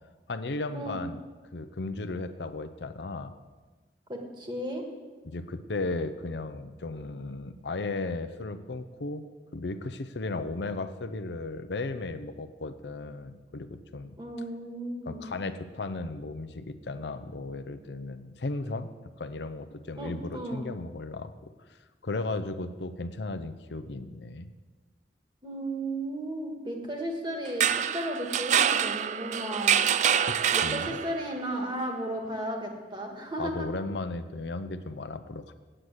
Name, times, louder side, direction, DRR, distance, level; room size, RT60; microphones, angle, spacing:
voice 1, 0.3-1.2 1.5-3.3 5.2-9.3 9.5-14.1 15.1-18.9 19.2-21.3 21.7-24.5 30.3-31.0 33.4-35.5, left 2 dB, 70° left, 10 dB, 0.6 m, -35 dB
voice 2, 4.1-4.8 14.2-15.2 20.0-20.7 25.4-29.8 30.5-33.7, right 1 dB, 25° right, 2 dB, 1.6 m, -34 dB
sound 1, 27.5-31.3, right 9 dB, 40° right, 0.3 m, -26 dB
8.8 x 8.1 x 7.9 m, 1.3 s
head